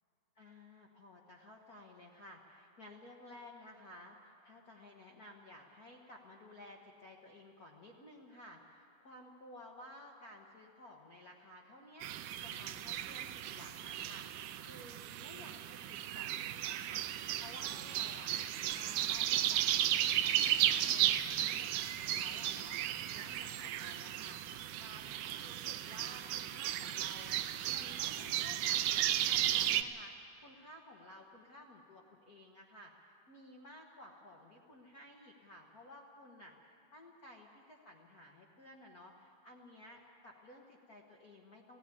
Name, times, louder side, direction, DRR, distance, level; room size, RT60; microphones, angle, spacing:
voice 1, 0.3-18.3 18.7-27.4 27.7-30.1 30.4-41.8, left 1 dB, 85° left, 0 dB, 0.8 m, -55 dB
sound 1, 12.0-29.8, right 12 dB, 90° right, 2.3 m, -35 dB
16.5 x 16.5 x 9.7 m, 2.7 s
omnidirectional pair, 3.7 m